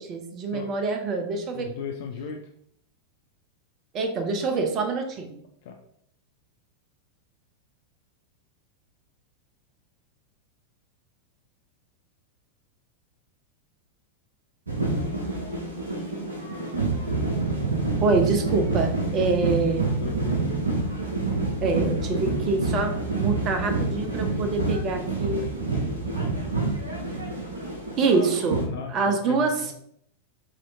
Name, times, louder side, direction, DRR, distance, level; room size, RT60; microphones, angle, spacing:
voice 1, 0.0-1.7 3.9-5.4 18.0-19.9 21.6-25.5 28.0-28.6 28.9-29.5, right 4 dB, 35° right, 6 dB, 0.7 m, -25 dB
voice 2, 1.5-2.5 5.6-5.7 20.0-20.4 28.6-29.7, left 6 dB, 50° left, 3 dB, 0.4 m, -36 dB
sound 1, 14.7-28.7, right 3 dB, 75° right, 0.8 m, -27 dB
5.0 x 2.8 x 2.7 m, 0.69 s
figure-of-eight pair, 90°, 0 cm